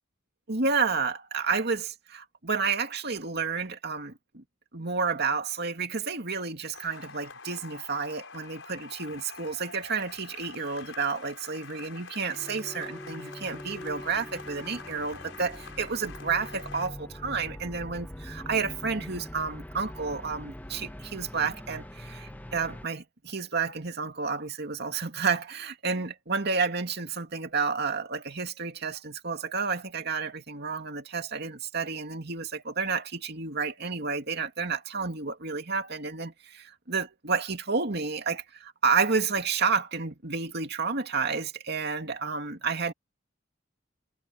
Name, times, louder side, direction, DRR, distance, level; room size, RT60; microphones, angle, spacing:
voice 1, 0.5-4.4 4.7-42.9, right 5 dB, 60° right, 2.5 m, -30 dB
sound 1, 6.7-16.9, left 5 dB, 75° left, 6.4 m, -46 dB
sound 2, 12.3-22.9, left 1 dB, 10° left, 0.9 m, -43 dB
head